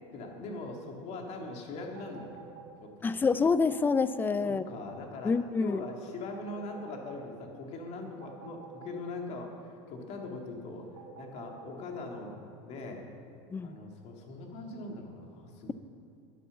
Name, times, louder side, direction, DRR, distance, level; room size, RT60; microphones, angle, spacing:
voice 1, 0.1-2.4 2.8-3.3 4.4-12.4 12.6-13.1 13.6-15.7, left 2 dB, 45° left, 2 dB, 2.3 m, -41 dB
sound 1, 2.0-2.7 3.7-4.5 6.5-7.2 8.2-9.0 11.0-11.7, right 9 dB, 65° right, 1.9 m, -48 dB
voice 2, 3.0-4.6 5.2-5.8 13.5-13.8, left 4 dB, 15° left, 15 dB, 0.4 m, -27 dB
10.5 x 9.9 x 7.1 m, 2.4 s
supercardioid pair, 115°, 15 cm